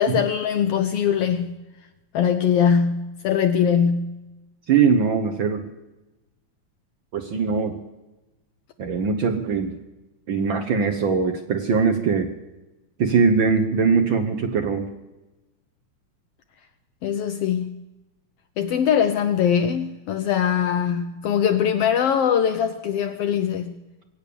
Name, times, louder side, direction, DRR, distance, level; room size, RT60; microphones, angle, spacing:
voice 1, 0.0-1.6 2.1-4.2 17.0-17.8 18.6-23.8, left 8 dB, 85° left, 1.3 m, -22 dB
voice 2, 4.7-5.7 7.1-7.8 8.8-9.8 10.3-12.3 13.0-14.9, right 5 dB, 70° right, 1.1 m, -21 dB
23.5 x 8.7 x 6.9 m
omnidirectional pair, 3.6 m